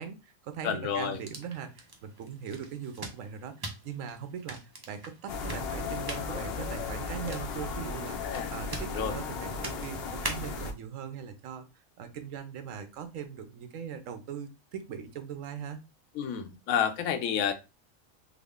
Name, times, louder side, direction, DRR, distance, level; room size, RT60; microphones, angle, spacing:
voice 1, 0.0-4.6 4.9-11.7 12.0-15.8, right 7 dB, 75° right, 9 dB, 1.0 m, -40 dB
voice 2, 0.6-1.2 8.2-8.5 9.0-9.1 16.2-17.5, left 8 dB, 85° left, 9 dB, 1.0 m, -29 dB
sound 1, 1.1-10.7, right 2 dB, 40° right, 0.3 m, -44 dB
sound 2, 5.3-10.7, left 4 dB, 60° left, 0.7 m, -35 dB
3.6 x 2.1 x 3.4 m, 0.27 s
omnidirectional pair, 1.4 m